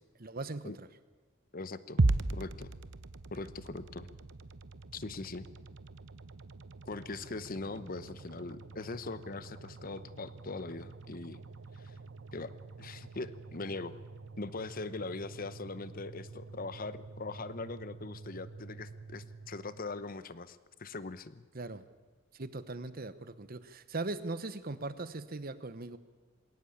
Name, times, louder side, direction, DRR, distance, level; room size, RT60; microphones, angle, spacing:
voice 1, 0.2-0.9 21.5-21.8 22.4-26.0, right 2 dB, 45° right, 14 dB, 1.0 m, -39 dB
voice 2, 1.5-2.0 2.3-2.7 3.3-4.1 4.9-5.5 6.9-11.4 11.7-11.9 12.3-12.5 12.8-13.9 14.4-21.4, left 3 dB, 45° left, 14 dB, 0.9 m, -41 dB
sound 1, 2.0-20.2, right 2 dB, 65° right, 0.9 m, -40 dB
21.0 x 18.0 x 8.6 m, 1.3 s
head